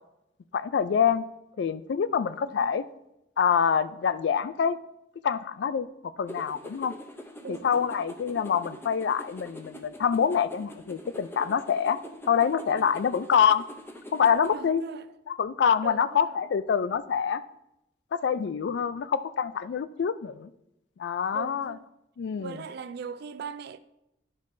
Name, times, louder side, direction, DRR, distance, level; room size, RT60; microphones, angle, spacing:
voice 1, 0.5-1.3 1.6-2.8 3.4-4.8 5.2-6.9 7.5-12.0 12.3-13.7 14.1-14.8 15.3-17.4 18.1-20.5 21.0-21.8 22.2-22.6, left 7 dB, 70° left, 0.3 m, -26 dB
voice 2, 2.4-2.9 7.4-7.9 14.5-15.1 15.8-16.4 21.3-21.9 22.4-23.8, right 6 dB, 65° right, 0.4 m, -40 dB
sound 1, 6.3-14.6, equal, 15° left, 0.5 m, -44 dB
11.0 x 5.2 x 2.6 m
head